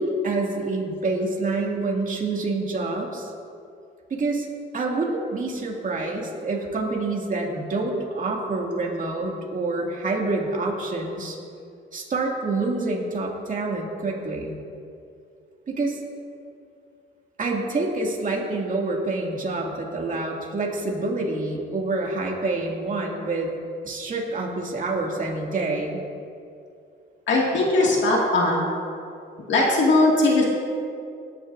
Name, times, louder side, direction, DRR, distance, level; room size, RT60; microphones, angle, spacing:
voice 1, 0.0-3.3 4.1-4.5 4.7-11.4 11.9-14.6 15.7-16.0 17.4-23.5 23.8-26.0, right 2 dB, 40° right, -1 dB, 2.4 m, -27 dB
voice 2, 27.3-28.7 29.5-30.4, left 2 dB, 65° left, -3 dB, 2.2 m, -19 dB
18.0 x 10.5 x 2.6 m, 2.5 s
cardioid pair, 90°, 20 cm